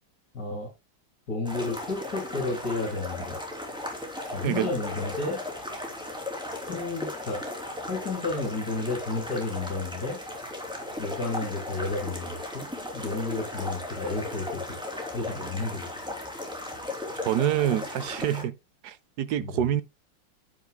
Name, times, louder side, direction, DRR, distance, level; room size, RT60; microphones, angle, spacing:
voice 1, 0.3-0.7 1.3-3.4 4.3-5.4 6.7-7.4 7.9-10.2 11.0-12.7 12.9-14.8 15.1-15.9 19.4-19.6, left 3 dB, 50° left, 3.6 m, -32 dB
sound 1, 1.4-18.4, left 1 dB, ahead, 3.0 m, -36 dB
voice 2, 17.2-18.6 18.8-19.8, right 11 dB, 70° right, 0.9 m, -26 dB
9.6 x 9.1 x 2.2 m
omnidirectional pair, 2.2 m